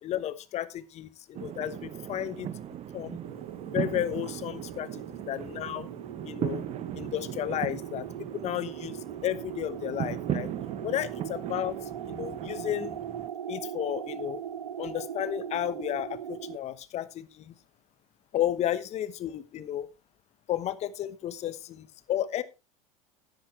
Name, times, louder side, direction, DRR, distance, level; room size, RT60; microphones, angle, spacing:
voice 1, 0.0-2.5 2.9-3.2 3.7-5.9 6.2-6.6 6.9-10.5 10.8-11.8 12.1-13.0 13.5-14.4 14.8-17.5 18.3-19.9 20.5-22.4, left 12 dB, 40° left, 15 dB, 1.1 m, -33 dB
sound 1, 1.3-13.3, right 10 dB, 35° right, 1.0 m, -38 dB
sound 2, 3.2-16.6, right 9 dB, 85° right, 0.6 m, -40 dB
12.0 x 10.0 x 3.2 m, 0.27 s
hypercardioid pair, 80°, 18 cm